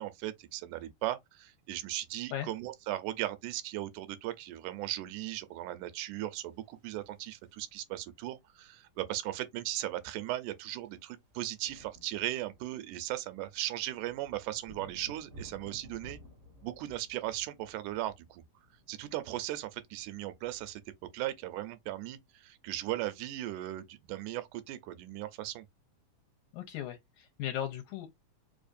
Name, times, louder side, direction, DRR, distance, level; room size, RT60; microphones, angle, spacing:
voice 1, 0.0-16.2 16.6-18.4 18.9-20.8 21.1-25.7, right 14 dB, 80° right, 2.2 m, -37 dB
sound 1, 6.4-8.0 9.3-9.4 9.6-9.8 10.1-22.2, right 1 dB, 45° right, 0.9 m, -56 dB
voice 2, 26.5-28.1, left 11 dB, 75° left, 2.1 m, -37 dB
4.9 x 2.5 x 2.5 m
omnidirectional pair, 3.6 m